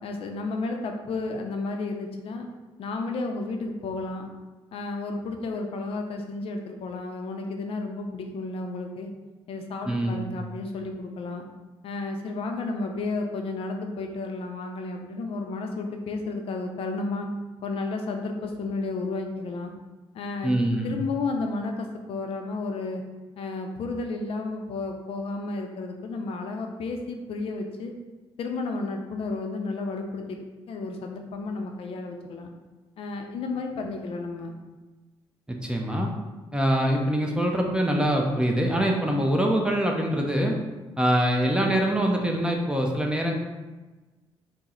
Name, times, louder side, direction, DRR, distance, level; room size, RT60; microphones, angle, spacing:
voice 1, 0.0-2.5 2.8-4.3 4.7-9.1 9.5-11.5 11.8-17.3 17.6-19.7 20.1-20.5 20.8-23.0 23.4-27.9 28.4-30.4 30.7-32.5 33.0-34.5, left 3 dB, 65° left, 3 dB, 0.5 m, -32 dB
voice 2, 9.9-10.3 20.4-21.0 35.5-36.1 36.5-40.6 41.0-43.3, right 1 dB, 10° right, 1 dB, 0.5 m, -24 dB
4.0 x 2.0 x 3.7 m, 1.2 s
cardioid pair, 100°, 10 cm